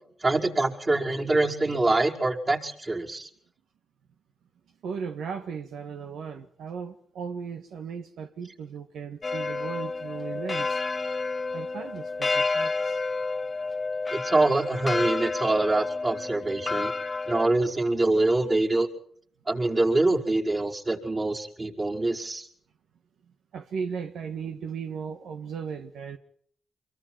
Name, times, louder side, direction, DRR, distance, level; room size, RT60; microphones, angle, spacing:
voice 1, 0.2-3.3 14.1-16.9 17.3-18.9 19.5-22.5, right 2 dB, 35° right, 5.3 m, -25 dB
voice 2, 4.8-10.8 11.5-13.0 23.5-26.2, right 6 dB, 85° right, 1.5 m, -36 dB
sound 1, 9.2-17.5, left 3 dB, 40° left, 1.0 m, -30 dB
26.0 x 23.0 x 4.6 m
cardioid pair, 60°, 0 cm